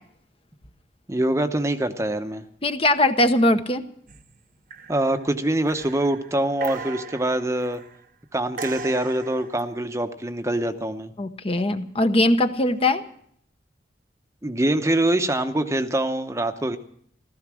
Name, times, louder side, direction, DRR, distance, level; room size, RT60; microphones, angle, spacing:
voice 1, 1.1-2.4 4.9-7.8 8.3-11.1 14.4-16.8, right 1 dB, 15° right, 9 dB, 0.8 m, -24 dB
voice 2, 2.6-3.8 11.2-13.0, left 1 dB, 30° left, 9 dB, 0.8 m, -20 dB
sound 1, 4.1-4.4 4.7-5.2 5.6-8.1 8.6-9.7 12.7-12.9, right 4 dB, 50° right, 0.9 m, -39 dB
15.5 x 14.0 x 6.2 m, 0.64 s
head